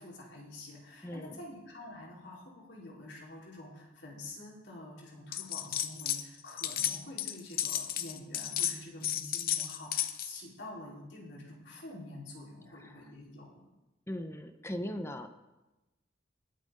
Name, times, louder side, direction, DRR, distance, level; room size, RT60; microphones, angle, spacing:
voice 1, 0.0-13.6, left 2 dB, 75° left, -5 dB, 4.4 m, -47 dB
voice 2, 1.0-1.4 12.7-13.0 14.1-15.3, equal, 15° left, 7 dB, 0.7 m, -39 dB
sound 1, 5.3-6.2 6.5-10.4, left 11 dB, 50° left, 0.7 m, -33 dB
20.5 x 7.8 x 3.9 m, 1.0 s
head